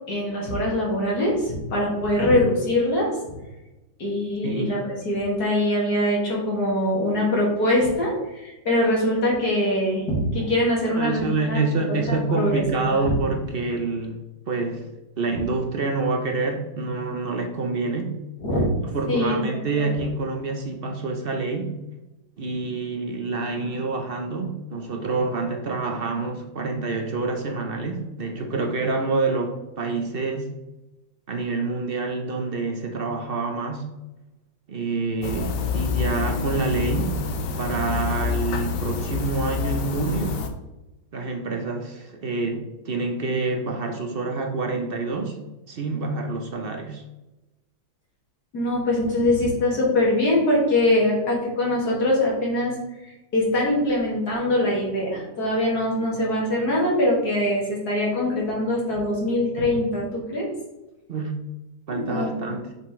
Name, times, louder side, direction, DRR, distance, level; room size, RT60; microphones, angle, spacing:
voice 1, 0.1-3.2 4.0-4.8 5.0-11.6 11.9-13.0 18.4-18.6 19.1-19.4 19.8-19.9 48.5-52.8 53.0-60.5 61.9-62.3, left 1 dB, 60° left, -4 dB, 2.6 m, -23 dB
voice 2, 4.4-4.8 10.9-14.2 14.5-14.9 15.2-18.2 18.9-21.7 22.4-30.5 31.3-33.8 34.7-37.2 37.6-40.4 41.1-45.4 45.7-47.0 61.1-61.4 61.9-62.6, right 3 dB, 60° right, 3 dB, 0.5 m, -27 dB
sound 1, 35.2-40.5, left 5 dB, 85° left, 1.4 m, -27 dB
6.8 x 5.4 x 3.1 m, 1.0 s
omnidirectional pair, 1.9 m